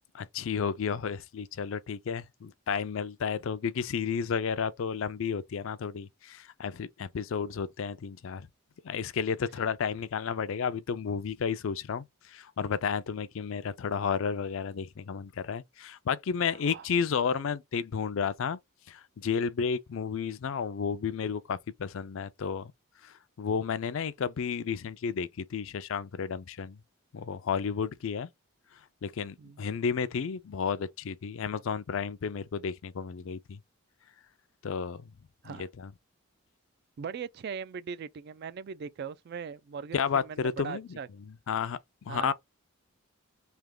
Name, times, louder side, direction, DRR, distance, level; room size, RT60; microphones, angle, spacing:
voice 1, 0.1-8.5 8.8-18.6 18.9-22.7 23.0-26.8 27.1-28.3 29.0-33.6 34.6-35.1 35.4-35.9 39.9-41.0 41.5-41.8 42.1-42.3, left 6 dB, 65° left, 0.4 m, -32 dB
voice 2, 16.4-16.9 29.4-29.6 35.4-35.7 37.0-41.1 42.1-42.3, right 6 dB, 50° right, 0.3 m, -40 dB
3.4 x 2.8 x 3.7 m
head